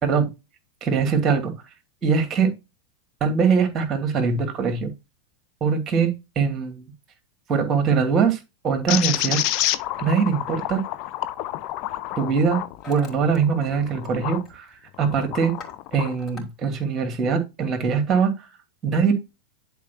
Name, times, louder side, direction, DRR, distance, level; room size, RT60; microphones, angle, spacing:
voice 1, 0.8-1.5 2.0-2.5 3.2-4.9 5.6-6.9 7.5-8.4 8.6-9.4 10.0-10.8 12.2-12.6 12.9-14.7 15.0-15.5 15.9-18.3 18.8-19.1, right 6 dB, 25° right, 2.6 m, -22 dB
sound 1, 8.9-14.4 14.9-16.2, left 14 dB, 40° left, 0.7 m, -29 dB
Hammer, 10.8-11.1 11.9-12.2 12.4-13.4 13.6-14.2 14.4-14.8 15.2-16.5, left 3 dB, 20° left, 4.5 m, -45 dB
11.5 x 4.7 x 2.9 m
figure-of-eight pair, 90°, 0 cm